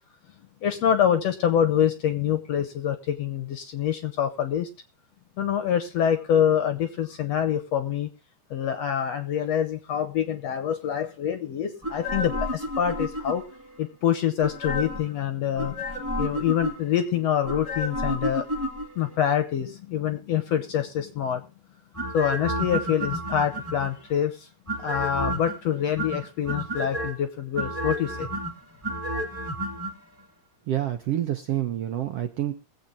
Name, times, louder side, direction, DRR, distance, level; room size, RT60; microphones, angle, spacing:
voice 1, 0.6-4.7 5.4-8.1 8.5-13.4 13.8-15.8 16.2-18.4 18.9-21.4 22.1-24.5 24.8-28.3, left 9 dB, 70° left, 9 dB, 1.7 m, -26 dB
sound 1, 11.8-13.7 14.4-15.1 15.6-17.0 17.4-19.1 21.9-24.1 24.7-25.6 26.0-27.1 27.5-29.9 30.2-30.3, equal, 5° right, 1.6 m, -31 dB
voice 2, 30.7-32.5, right 12 dB, 75° right, 6 dB, 1.4 m, -27 dB
22.5 x 8.0 x 2.7 m, 0.33 s
omnidirectional pair, 3.8 m